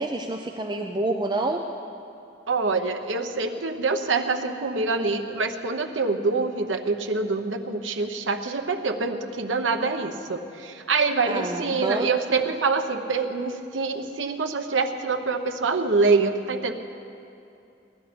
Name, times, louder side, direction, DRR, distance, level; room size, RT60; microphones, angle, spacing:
voice 1, 0.0-1.6 11.3-12.1, right 2 dB, 25° right, 3 dB, 0.5 m, -28 dB
voice 2, 2.5-16.7, right 4 dB, 90° right, 6 dB, 0.9 m, -25 dB
18.5 x 12.0 x 5.1 m, 2.6 s
head